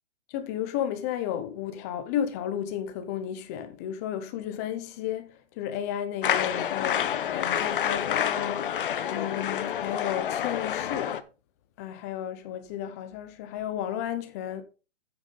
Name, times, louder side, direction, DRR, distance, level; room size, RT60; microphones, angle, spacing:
voice 1, 0.3-11.2 11.8-14.6, left 10 dB, 15° left, 0.6 m, -33 dB
sound 1, 6.2-11.2, left 9 dB, 45° left, 0.9 m, -28 dB
9.0 x 8.4 x 3.9 m
hypercardioid pair, 155°, 36 cm